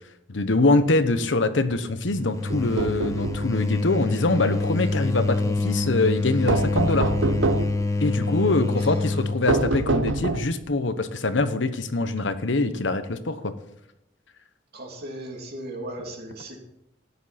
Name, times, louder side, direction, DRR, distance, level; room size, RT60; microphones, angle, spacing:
voice 1, 0.3-7.1 8.0-13.5, left 2 dB, 75° left, 10 dB, 1.0 m, -24 dB
sound 1, 1.7-9.4, left 2 dB, 15° left, 0.9 m, -26 dB
sound 2, 2.5-3.5 6.5-7.8 9.5-10.6, right 3 dB, 85° right, 0.7 m, -25 dB
voice 2, 14.7-16.6, right 1 dB, 55° right, 1 dB, 2.9 m, -37 dB
13.5 x 10.0 x 4.2 m, 0.83 s
head